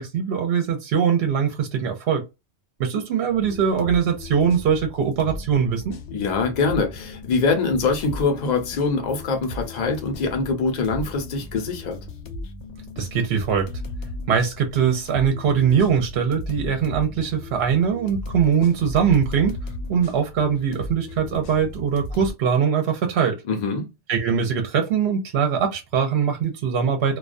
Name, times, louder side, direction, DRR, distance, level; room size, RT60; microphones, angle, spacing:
voice 1, 0.0-2.2 2.8-6.0 13.0-13.7 14.3-19.6 19.9-23.4 24.1-27.2, right 7 dB, 70° right, 0.8 m, -22 dB
sound 1, 3.3-22.3, left 2 dB, 80° left, 0.9 m, -36 dB
voice 2, 6.1-12.0 23.5-23.9, left 4 dB, 50° left, 0.6 m, -24 dB
2.3 x 2.2 x 2.5 m
omnidirectional pair, 1.1 m